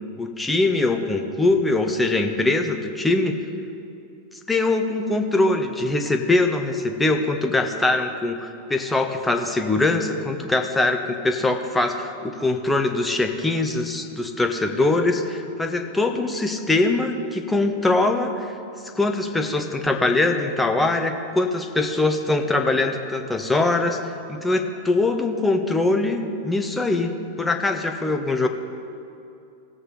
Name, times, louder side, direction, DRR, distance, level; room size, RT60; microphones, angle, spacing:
voice 1, 0.2-3.3 4.5-18.5 19.0-24.0 24.3-27.1 27.4-28.5, left 2 dB, 10° left, 5 dB, 0.9 m, -22 dB
18.0 x 8.0 x 3.9 m, 2.6 s
figure-of-eight pair, 90°, 0 cm